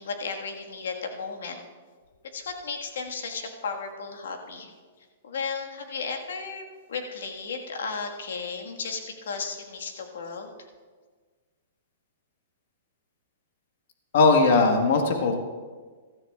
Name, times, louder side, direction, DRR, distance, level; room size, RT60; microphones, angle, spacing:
voice 1, 0.0-1.6 2.3-4.7 5.2-10.7, left 5 dB, 80° left, 3 dB, 1.5 m, -34 dB
voice 2, 14.1-15.4, left 3 dB, 60° left, 3 dB, 1.3 m, -19 dB
15.5 x 13.5 x 2.4 m, 1.5 s
hypercardioid pair, 145°, 0 cm